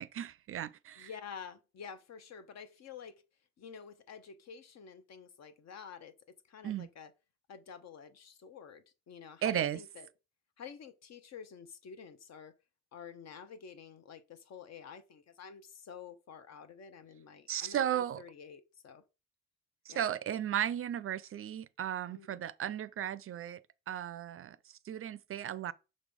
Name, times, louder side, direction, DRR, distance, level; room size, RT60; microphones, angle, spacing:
voice 1, 0.0-1.1 6.6-6.9 9.4-9.8 17.5-18.2 19.9-23.6 23.9-25.7, right 10 dB, 45° right, 0.4 m, -35 dB
voice 2, 1.0-3.2 3.6-7.1 7.5-10.1 10.6-12.5 12.9-19.0 19.9-20.0 22.1-22.4, left 6 dB, 60° left, 0.9 m, -49 dB
6.4 x 3.1 x 5.3 m
cardioid pair, 90°, 30 cm